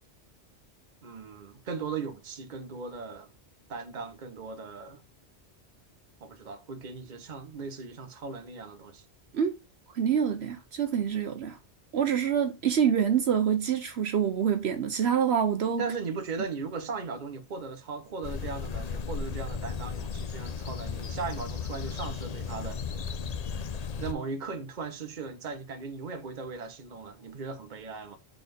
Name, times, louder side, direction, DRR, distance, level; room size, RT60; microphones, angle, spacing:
voice 1, 1.0-3.3 3.7-5.0 6.2-9.0 15.8-22.8 24.0-28.2, right 4 dB, 45° right, 1.0 m, -38 dB
voice 2, 9.9-11.5 11.9-15.8, right 8 dB, 70° right, 1.0 m, -26 dB
sound 1, 18.2-24.1, left 6 dB, 45° left, 0.5 m, -35 dB
4.7 x 4.2 x 5.1 m
omnidirectional pair, 1.2 m